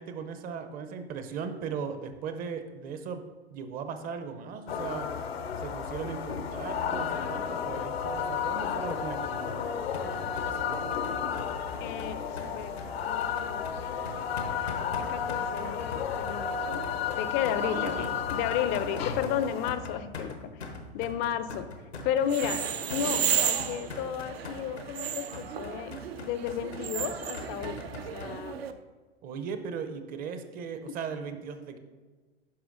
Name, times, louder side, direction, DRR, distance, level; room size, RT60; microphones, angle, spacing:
voice 1, 0.0-3.2 3.5-5.1 5.6-10.9 17.6-18.5 29.2-31.8, right 6 dB, 30° right, 9 dB, 0.6 m, -38 dB
sound 1, 4.7-19.7, left 7 dB, 70° left, 0.7 m, -33 dB
sound 2, 8.9-28.3, left 3 dB, 90° left, 1.0 m, -42 dB
voice 2, 11.8-12.7 13.1-13.7 15.0-20.7 20.9-21.7 22.0-25.9 26.2-27.8 28.1-28.6 30.8-30.9, left 9 dB, 30° left, 12 dB, 0.5 m, -33 dB
sound 3, 22.2-28.7, right 9 dB, 70° right, 0.6 m, -33 dB
11.0 x 4.6 x 2.5 m, 1.3 s
figure-of-eight pair, 95°, 31 cm